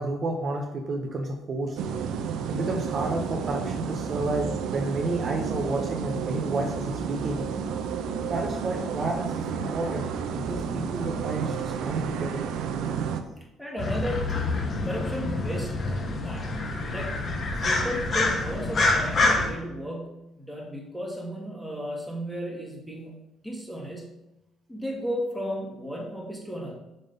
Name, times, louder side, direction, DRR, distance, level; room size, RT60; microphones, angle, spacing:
voice 1, 0.0-1.8 2.5-7.4 8.2-12.5 17.5-17.7, right 2 dB, 40° right, 2 dB, 0.7 m, -31 dB
sound 1, 1.8-13.2, right 6 dB, 75° right, 0.5 m, -31 dB
voice 2, 13.6-16.0 16.2-16.5 16.9-17.2 17.6-23.1 23.4-24.1 24.7-26.7, equal, ahead, -2 dB, 1.5 m, -34 dB
sound 2, 13.8-19.5, left 2 dB, 40° left, 1.1 m, -26 dB
5.3 x 3.6 x 5.3 m, 0.93 s
cardioid pair, 120°, 0 cm